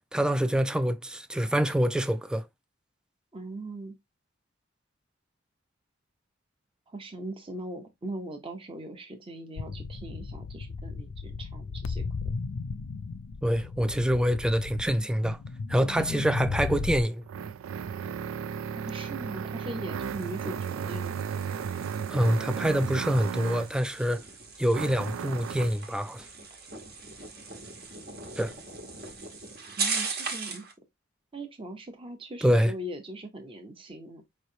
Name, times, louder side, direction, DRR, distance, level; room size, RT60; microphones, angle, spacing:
voice 1, 0.1-2.5 13.4-15.4 15.7-17.2 22.1-24.2 24.6-26.3 28.4-28.5 32.4-32.7, equal, 5° right, 0.3 m, -26 dB
voice 2, 3.3-3.9 6.9-12.0 16.0-16.3 18.7-21.3 29.8-30.6 31.3-34.2, right 1 dB, 25° right, 0.8 m, -40 dB
sound 1, 9.6-17.0, left 4 dB, 70° left, 0.5 m, -35 dB
sound 2, 16.6-23.8 24.7-25.8, right 7 dB, 80° right, 0.3 m, -35 dB
sound 3, 20.0-30.7, right 4 dB, 55° right, 1.2 m, -39 dB
4.8 x 3.2 x 2.7 m
head